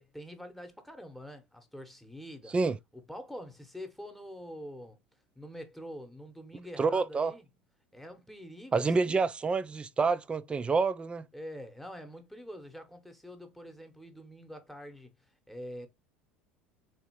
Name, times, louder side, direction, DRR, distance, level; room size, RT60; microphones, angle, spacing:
voice 1, 0.0-2.5 2.9-5.0 5.4-7.5 7.9-9.2 11.3-15.1 15.5-15.9, equal, ahead, 1.0 m, -45 dB
voice 2, 6.8-7.3 8.7-11.3, right 4 dB, 20° right, 0.3 m, -28 dB
3.7 x 2.9 x 2.9 m
hypercardioid pair, 75°, 6 cm